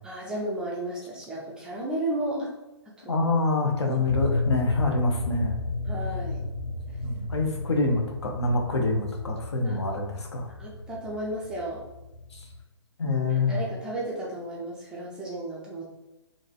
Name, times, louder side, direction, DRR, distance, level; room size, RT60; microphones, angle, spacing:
voice 1, 0.0-2.5 3.0-3.3 3.9-4.0 5.9-6.4 9.6-9.8 10.6-11.9 13.3-15.8, right 1 dB, 5° right, -5 dB, 0.3 m, -33 dB
voice 2, 3.1-5.6 7.0-10.5 12.3-12.4 13.0-13.6, left 3 dB, 70° left, 2 dB, 0.7 m, -26 dB
sound 1, 4.0-12.6, left 3 dB, 30° left, 0.7 m, -33 dB
2.9 x 2.6 x 2.3 m, 1.0 s
figure-of-eight pair, 130°, 15 cm